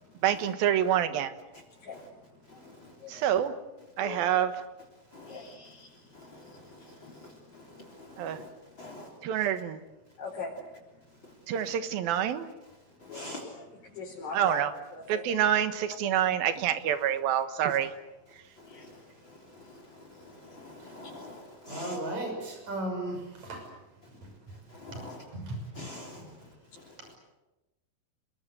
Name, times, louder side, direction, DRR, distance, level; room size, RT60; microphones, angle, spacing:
voice 1, 0.2-1.3 3.1-3.5 4.0-4.5 8.2-8.4 9.2-9.8 11.5-12.5 14.3-14.7 15.1-17.9, right 10 dB, 80° right, 3.3 m, -27 dB
voice 2, 1.8-2.2 2.5-3.2 4.0-4.5 5.3-7.6 8.7-9.0 10.2-10.5 13.1-14.6 14.9-15.3 18.7-18.9 26.1-26.4, left 4 dB, 75° left, 6.7 m, -43 dB
voice 3, 13.1-13.4 20.9-21.4 21.7-22.0 24.8-25.2 25.8-26.1, left 1 dB, 35° left, 4.1 m, -42 dB
voice 4, 21.7-23.6 25.3-25.6, right 1 dB, 50° right, 7.3 m, -35 dB
30.0 x 21.5 x 8.1 m
omnidirectional pair, 4.1 m